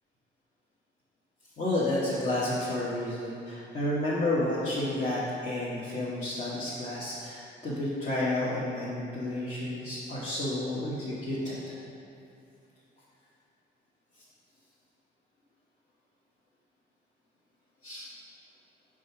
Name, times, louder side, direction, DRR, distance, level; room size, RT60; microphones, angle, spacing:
voice 1, 1.6-11.6 17.8-18.1, left 1 dB, 40° left, -9 dB, 1.2 m, -31 dB
5.0 x 4.8 x 5.8 m, 2.6 s
cardioid pair, 90°, 20 cm